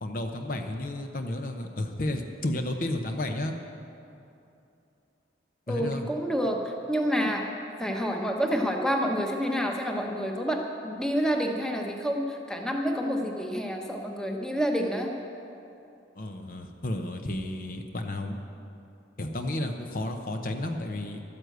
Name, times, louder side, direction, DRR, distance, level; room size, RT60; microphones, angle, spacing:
voice 1, 0.0-3.6 5.7-6.1 16.2-18.4 19.2-21.2, left 1 dB, 45° left, 5 dB, 0.8 m, -32 dB
voice 2, 5.7-7.5 7.8-15.1, equal, 5° left, 1 dB, 1.0 m, -28 dB
12.5 x 9.8 x 8.0 m, 2.7 s
head